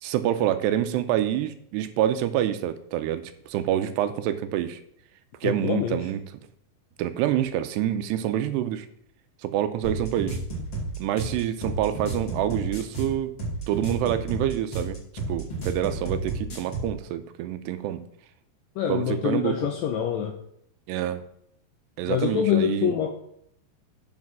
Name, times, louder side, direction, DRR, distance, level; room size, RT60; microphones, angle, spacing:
voice 1, 0.0-4.8 5.4-6.2 7.0-8.9 9.4-10.4 11.0-13.4 13.7-15.0 15.3-18.0 18.9-19.6 20.9-21.2 22.0-22.9, right 11 dB, 85° right, 10 dB, 2.7 m, -27 dB
voice 2, 5.4-6.0 18.8-20.3 22.1-23.1, left 9 dB, 80° left, 4 dB, 2.0 m, -25 dB
sound 1, 9.8-16.9, right 2 dB, 30° left, 3.5 m, -31 dB
9.7 x 5.1 x 6.0 m, 0.71 s
omnidirectional pair, 4.9 m